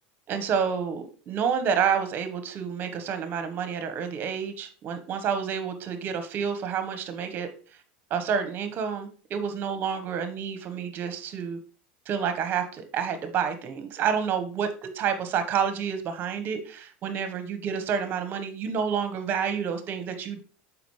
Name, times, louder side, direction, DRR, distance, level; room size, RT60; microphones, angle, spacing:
voice 1, 0.3-7.5 8.1-11.6 12.1-20.4, right 7 dB, 40° right, 9 dB, 1.3 m, -29 dB
7.0 x 5.1 x 3.2 m, 0.39 s
supercardioid pair, 120°, 5 cm